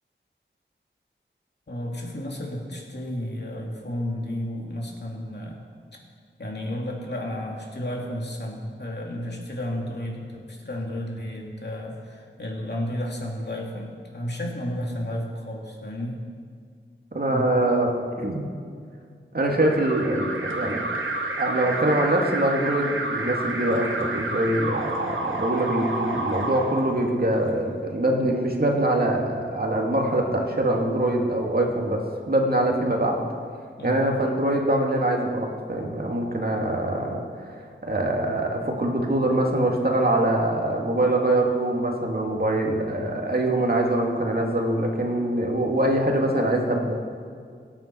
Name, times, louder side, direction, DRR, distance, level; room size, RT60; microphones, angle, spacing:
voice 1, 1.7-5.6 6.4-16.2 17.3-17.4 33.8-34.1, left 1 dB, 60° left, -1 dB, 2.6 m, -32 dB
voice 2, 17.1-18.5 19.3-20.9 21.4-33.2 33.8-37.2 37.9-46.9, right 1 dB, 50° right, 0 dB, 2.2 m, -24 dB
Alarm, 19.6-27.5, right 2 dB, 90° right, 1.5 m, -30 dB
23.5 x 8.9 x 4.6 m, 2.1 s
wide cardioid pair, 65°, 20 cm